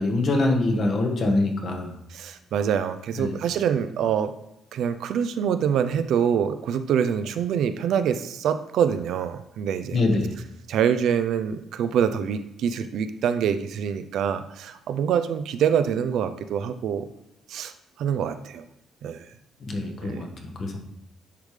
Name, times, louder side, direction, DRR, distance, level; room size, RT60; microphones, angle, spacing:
voice 1, 0.0-1.9 3.2-3.3 9.9-10.3 19.6-20.3 20.6-20.8, left 2 dB, 50° left, 3 dB, 1.3 m, -24 dB
voice 2, 2.1-4.3 4.7-10.0 10.7-17.1 17.5-17.7 18.0-18.6 19.0-19.2 20.0-20.2, right 8 dB, 75° right, 10 dB, 0.4 m, -25 dB
10.0 x 3.5 x 3.3 m, 0.82 s
cardioid pair, 90°, 0 cm